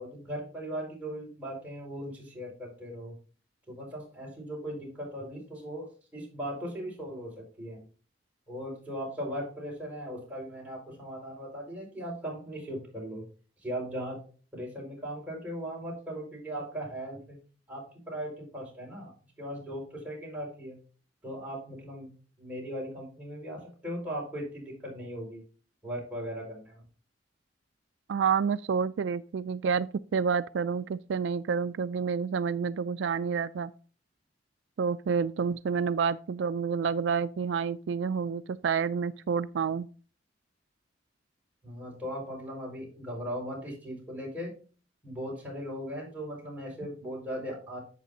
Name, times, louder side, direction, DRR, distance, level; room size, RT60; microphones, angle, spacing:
voice 1, 0.0-3.1 3.7-7.8 8.5-13.2 13.6-14.2 14.5-17.4 17.7-20.8 21.2-22.1 22.4-25.4 25.8-26.8 41.6-44.5 45.0-47.8, equal, 10° right, 4.9 m, -38 dB
voice 2, 28.1-33.7 34.8-39.9, right 6 dB, 75° right, 0.3 m, -29 dB
11.0 x 8.3 x 2.7 m
head